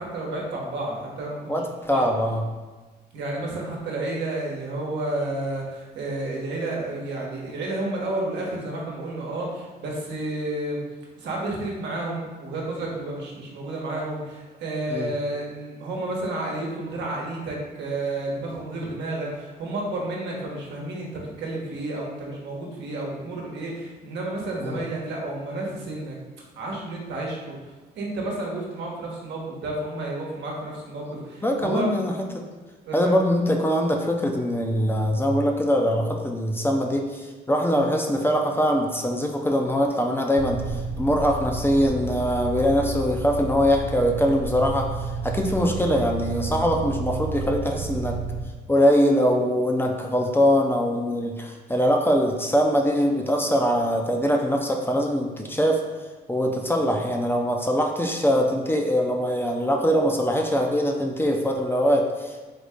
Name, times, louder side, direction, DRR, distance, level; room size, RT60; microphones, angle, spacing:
voice 1, 0.0-2.1 3.1-10.8 11.2-26.2 26.5-31.9 32.8-33.1, right 2 dB, 80° right, -3 dB, 1.0 m, -31 dB
voice 2, 1.5-2.4 14.9-15.1 24.6-24.8 31.4-32.4 32.9-44.9 45.2-48.2 48.7-55.8 56.3-62.4, equal, 10° left, 2 dB, 0.5 m, -22 dB
sound 1, 40.4-48.4, right 3 dB, 55° right, 0.5 m, -31 dB
4.0 x 2.7 x 3.5 m, 1.3 s
cardioid pair, 85°, 18 cm